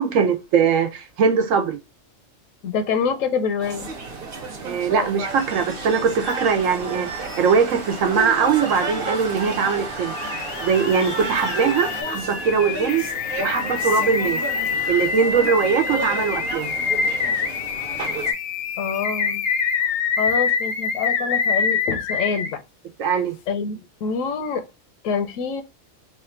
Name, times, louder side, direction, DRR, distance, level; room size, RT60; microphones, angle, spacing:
voice 1, 0.0-1.8 4.6-10.1 10.6-13.0 13.4-14.4 14.9-16.7 23.0-23.4, right 6 dB, 80° right, 1.1 m, -21 dB
voice 2, 2.6-3.9 18.8-19.4 20.2-22.6 23.5-24.7 25.0-25.6, left 6 dB, 85° left, 1.0 m, -26 dB
sound 1, 3.6-18.3, right 3 dB, 50° right, 1.0 m, -33 dB
sound 2, 5.2-12.0, right 3 dB, 30° right, 0.7 m, -33 dB
sound 3, 6.3-6.4 9.7-22.5, left 6 dB, 60° left, 0.7 m, -26 dB
3.2 x 2.4 x 4.3 m
omnidirectional pair, 1.3 m